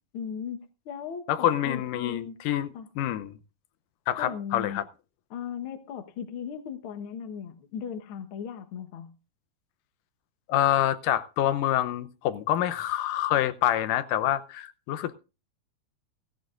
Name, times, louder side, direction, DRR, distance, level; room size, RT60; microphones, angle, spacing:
voice 1, 0.1-2.4 2.7-2.9 4.2-4.8 5.3-9.2, left 7 dB, 55° left, 1.6 m, -37 dB
voice 2, 1.3-3.3 4.1-4.8 10.5-15.1, left 12 dB, 80° left, 2.4 m, -26 dB
16.5 x 15.5 x 2.5 m
omnidirectional pair, 3.8 m